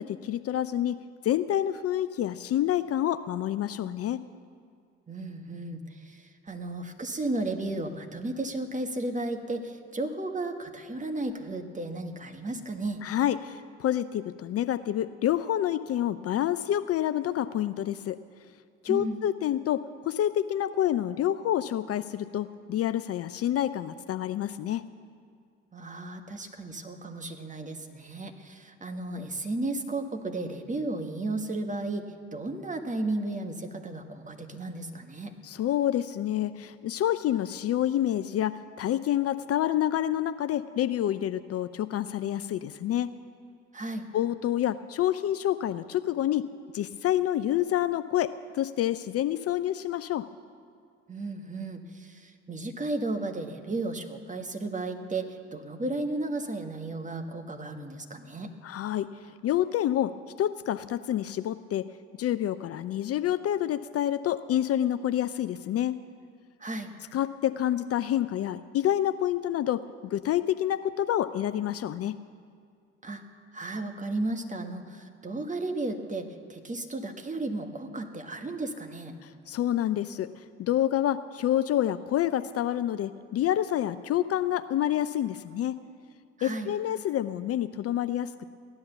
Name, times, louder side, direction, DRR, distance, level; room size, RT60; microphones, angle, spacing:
voice 1, 0.0-4.2 13.0-18.2 18.8-24.8 35.4-43.1 44.1-46.5 46.7-50.3 58.6-61.9 62.2-66.0 67.1-72.2 79.2-85.8 86.4-88.5, left 11 dB, 45° left, 13 dB, 0.5 m, -28 dB
voice 2, 5.1-13.0 18.9-19.2 25.7-32.1 32.3-35.3 43.7-44.1 51.1-58.5 66.6-66.9 73.0-73.2 73.5-79.2 86.4-86.7, right 2 dB, 20° right, 5 dB, 1.7 m, -34 dB
15.5 x 11.0 x 6.9 m, 2.2 s
hypercardioid pair, 50°, 33 cm